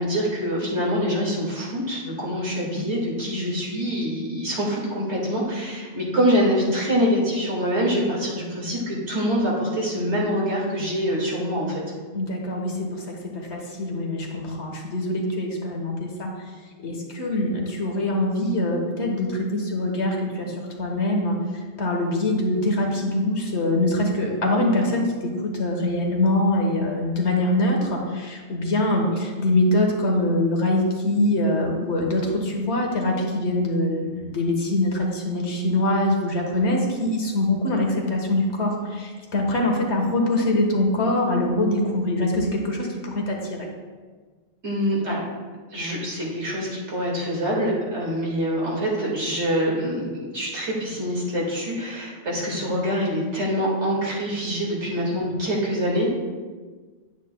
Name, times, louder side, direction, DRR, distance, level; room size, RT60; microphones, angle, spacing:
voice 1, 0.0-11.8 44.6-45.2 45.7-56.1, equal, 75° right, -4 dB, 2.3 m, -25 dB
voice 2, 12.1-13.0 13.3-16.3 16.8-43.7, left 1 dB, 70° left, 1 dB, 1.5 m, -24 dB
9.7 x 8.1 x 2.2 m, 1.4 s
omnidirectional pair, 1.2 m